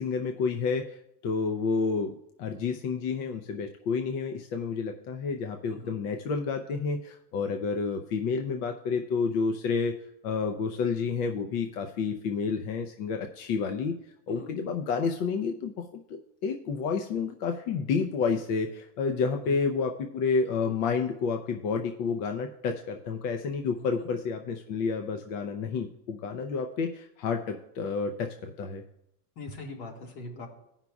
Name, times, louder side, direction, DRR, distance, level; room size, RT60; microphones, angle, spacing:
voice 1, 0.0-9.9 10.2-13.9 14.3-28.8, left 5 dB, 65° left, 4 dB, 0.8 m, -30 dB
voice 2, 23.8-24.1 29.4-30.5, left 2 dB, 90° left, 0 dB, 2.1 m, -42 dB
16.5 x 5.7 x 2.4 m, 0.80 s
supercardioid pair, 130°, 49 cm